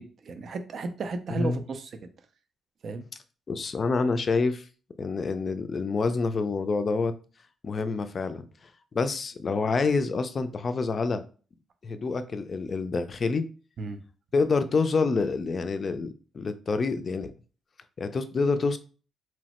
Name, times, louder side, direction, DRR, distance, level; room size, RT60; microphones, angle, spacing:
voice 1, 0.0-1.9 2.8-3.0 13.8-14.0, right 3 dB, 60° right, 8 dB, 0.4 m, -34 dB
voice 2, 3.5-4.7 5.0-7.1 7.6-8.4 8.9-11.2 11.8-13.4 14.3-17.3 18.0-18.8, left 4 dB, 45° left, 10 dB, 0.3 m, -27 dB
3.0 x 2.0 x 2.9 m, 0.38 s
supercardioid pair, 60°, 0 cm